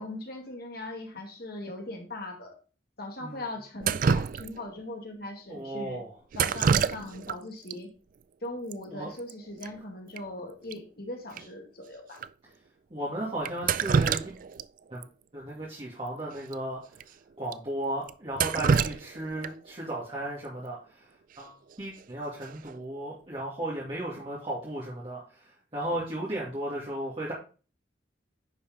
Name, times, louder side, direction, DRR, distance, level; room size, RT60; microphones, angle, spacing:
voice 1, 0.0-2.6 3.0-6.0 6.4-7.9 8.4-12.2 18.6-18.8, left 1 dB, 55° left, 2 dB, 2.1 m, -39 dB
Drip, 3.8-4.8 6.3-7.4 7.7-7.8 8.7-8.8 9.1-9.3 9.6-9.7 10.2-10.3 10.7-10.8 11.4-11.5 12.2-12.3 13.4-14.7 15.0-15.1 16.4-16.5 17.0-17.1 17.5-17.6 18.1-19.7 21.7-22.0 22.4-22.8, right 6 dB, 45° right, 0.3 m, -27 dB
voice 2, 5.5-6.1 8.9-9.1 12.9-14.4 14.9-15.0 15.3-16.8 17.4-21.1 21.4-25.2 25.7-27.3, right 1 dB, 30° right, -7 dB, 2.4 m, -35 dB
10.0 x 5.2 x 3.7 m, 0.36 s
head